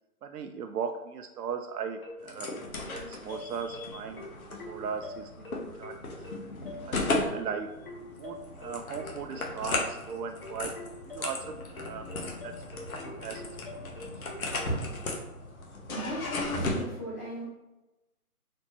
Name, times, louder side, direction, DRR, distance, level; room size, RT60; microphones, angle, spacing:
voice 1, 0.2-2.5 2.9-4.3 4.7-6.0 6.3-6.4 6.9-7.7 8.2-14.1, right 6 dB, 85° right, 6 dB, 0.5 m, -38 dB
sound 1, 2.0-14.7, left 2 dB, 35° left, 1.0 m, -44 dB
sound 2, 2.2-16.8, left 2 dB, 65° left, 1.0 m, -36 dB
voice 2, 15.9-17.4, equal, 15° left, -16 dB, 0.9 m, -37 dB
4.1 x 2.9 x 3.1 m, 1.0 s
hypercardioid pair, 165°, 46 cm